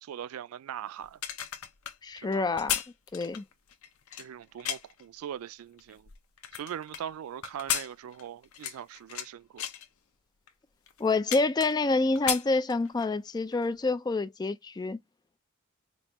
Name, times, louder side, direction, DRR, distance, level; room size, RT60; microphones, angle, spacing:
voice 1, 0.0-1.2 2.2-2.5 4.2-6.1 6.6-9.7, right 9 dB, 80° right, 0.3 m, -41 dB
sound 1, 1.0-5.0 5.6-7.0 7.4-9.3 9.6-9.9 10.5-10.6 10.9-11.9 12.1-13.1 13.5-13.7, left 10 dB, 85° left, 0.7 m, -35 dB
voice 2, 2.0-2.8 3.1-3.4 11.0-15.0, left 3 dB, 20° left, 0.3 m, -27 dB
5.3 x 2.3 x 2.9 m
head